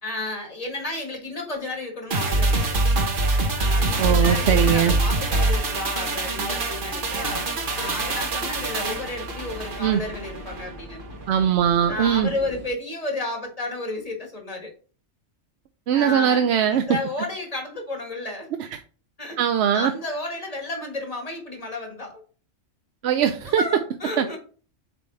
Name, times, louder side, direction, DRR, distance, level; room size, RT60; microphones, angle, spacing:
voice 1, 0.0-2.8 3.6-11.0 11.9-14.7 15.9-18.5 19.2-19.4 19.7-22.2 23.4-24.4, left 2 dB, 30° left, 2 dB, 1.6 m, -32 dB
sound 1, 2.1-10.7 11.0-11.1, right 2 dB, 45° right, 1.1 m, -24 dB
sound 2, 3.6-12.7, left 1 dB, 25° right, 1.6 m, -40 dB
voice 2, 4.0-4.9 9.8-10.0 11.3-12.3 15.9-16.8 19.4-19.9 23.0-23.6 24.2-24.3, right 9 dB, 65° right, 6 dB, 0.8 m, -20 dB
7.6 x 3.5 x 4.0 m, 0.40 s
omnidirectional pair, 1.3 m